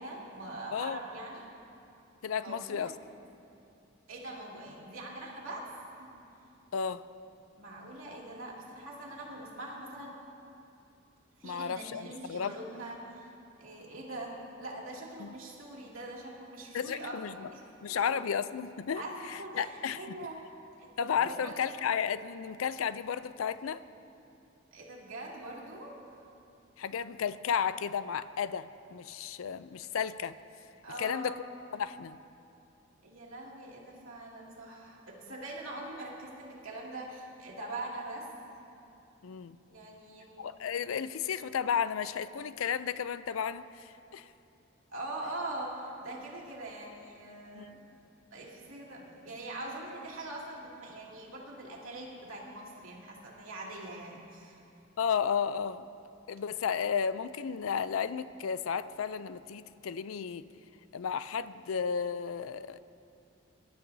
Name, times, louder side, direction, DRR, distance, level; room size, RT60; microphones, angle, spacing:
voice 1, 0.0-1.6 2.4-3.0 4.1-5.6 6.0-6.1 7.6-10.2 11.4-13.3 13.6-17.6 17.9-18.0 18.9-20.4 20.8-20.9 21.1-21.5 24.7-25.9 30.8-31.4 33.0-38.3 39.7-40.4 44.9-47.8 48.3-54.6, right 1 dB, 85° right, -3 dB, 2.5 m, -43 dB
voice 2, 2.2-2.9 6.7-7.0 11.4-12.5 15.2-15.3 16.7-17.3 17.8-19.0 19.3-20.0 21.0-23.8 26.8-30.4 31.0-31.3 31.7-32.2 39.2-39.5 40.4-44.2 47.5-47.7 55.0-55.8 56.3-60.4 60.9-62.8, left 7 dB, 90° left, 15 dB, 0.4 m, -33 dB
23.5 x 12.0 x 2.7 m, 2.8 s
head